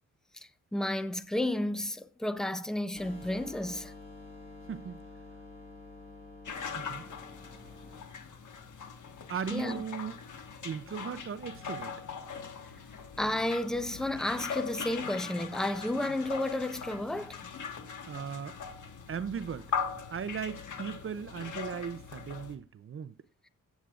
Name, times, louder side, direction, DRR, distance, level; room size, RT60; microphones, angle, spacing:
voice 1, 0.7-3.9 9.5-9.8 13.2-17.4, left 1 dB, ahead, 0.7 m, -32 dB
sound 1, 3.0-8.0, left 3 dB, 30° left, 2.6 m, -49 dB
voice 2, 4.7-5.0 6.8-7.0 9.3-10.2 10.6-12.0 18.1-18.6 19.1-19.7 20.1-23.1, right 7 dB, 45° right, 0.5 m, -37 dB
sound 2, 6.5-22.6, left 6 dB, 70° left, 1.5 m, -40 dB
15.0 x 8.3 x 2.5 m
wide cardioid pair, 110°, 31 cm